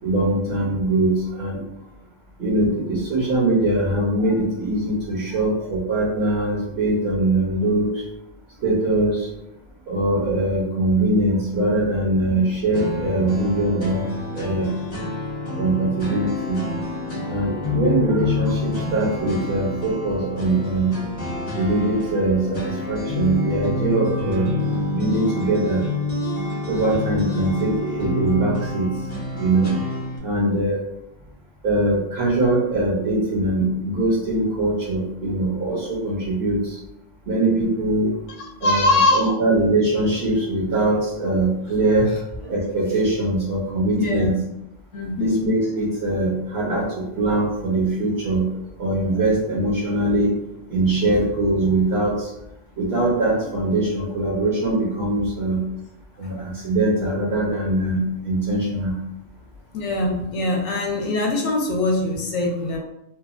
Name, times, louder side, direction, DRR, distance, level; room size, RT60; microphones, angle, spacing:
voice 1, 0.0-1.6 2.4-8.1 8.6-9.3 9.9-14.7 15.6-16.6 17.3-20.9 21.5-24.5 24.9-25.8 26.7-28.9 29.3-29.7 30.2-30.8 31.6-36.8 37.3-38.2 38.6-42.2 42.4-44.4 45.2-50.3 50.7-52.3 52.8-55.6 56.2-59.0, right 2 dB, 60° right, -6 dB, 0.9 m, -22 dB
sound 1, 12.7-30.2, left 2 dB, 40° left, 0.7 m, -28 dB
voice 2, 38.4-39.4 44.0-44.3 44.9-45.4 59.7-62.8, left 2 dB, 70° left, 0 dB, 0.9 m, -22 dB
2.8 x 2.2 x 2.4 m, 0.85 s
omnidirectional pair, 1.3 m